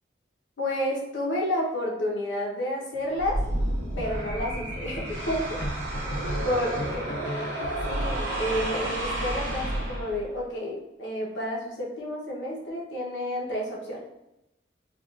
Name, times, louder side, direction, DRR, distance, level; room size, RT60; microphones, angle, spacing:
voice 1, 0.6-3.4 4.0-5.6 6.4-7.5 7.8-14.0, left 1 dB, 85° left, -3 dB, 0.8 m, -30 dB
sound 1, 2.9-3.5 5.6-8.3, left 1 dB, 60° left, 0.4 m, -38 dB
sound 2, 3.2-10.4, right 1 dB, 90° right, 0.9 m, -31 dB
3.6 x 2.3 x 2.4 m, 0.90 s
head